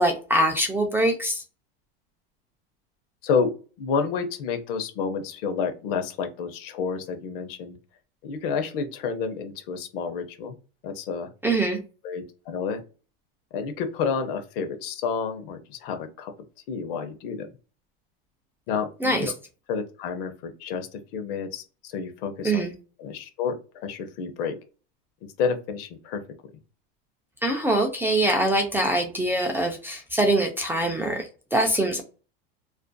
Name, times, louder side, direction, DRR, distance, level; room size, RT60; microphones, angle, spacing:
voice 1, 0.0-1.4 11.4-11.8 19.0-19.3 22.4-22.7 27.4-32.0, right 1 dB, 10° right, 3 dB, 0.4 m, -23 dB
voice 2, 3.8-7.8 8.2-10.6 10.8-11.3 12.0-12.8 13.5-16.3 16.7-17.5 18.7-19.3 19.7-22.7 23.0-24.5 25.4-26.2, left 5 dB, 70° left, 7 dB, 0.8 m, -29 dB
2.5 x 2.4 x 2.2 m, 0.35 s
supercardioid pair, 120°, 29 cm